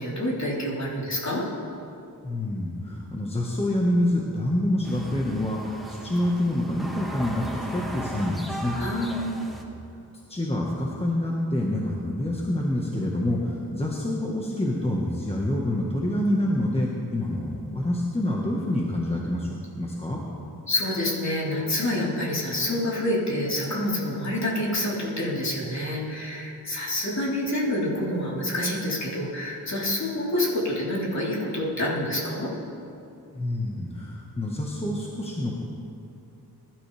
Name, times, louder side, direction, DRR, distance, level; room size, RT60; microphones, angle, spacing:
voice 1, 0.0-1.5 8.7-9.5 20.7-32.5, left 1 dB, 45° left, -6 dB, 4.1 m, -27 dB
voice 2, 2.2-7.4 7.7-8.8 10.3-20.2 33.3-35.6, left 1 dB, 15° left, -3 dB, 1.6 m, -27 dB
sound 1, 4.8-9.6, right 1 dB, ahead, 1.8 m, -37 dB
22.0 x 12.5 x 3.5 m, 2.6 s
wide cardioid pair, 100°, 38 cm